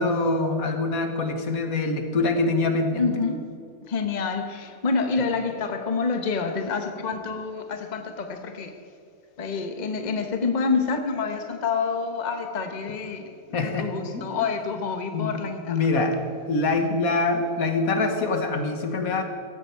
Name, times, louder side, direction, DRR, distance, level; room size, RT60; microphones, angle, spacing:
voice 1, 0.0-3.1 13.5-14.2 15.1-15.3 15.7-16.2 16.5-19.2, left 3 dB, 75° left, 1.8 m, -24 dB
voice 2, 3.0-3.5 3.9-8.7 9.4-15.8, left 4 dB, 35° left, 1.1 m, -27 dB
15.5 x 15.0 x 4.6 m
omnidirectional pair, 1.5 m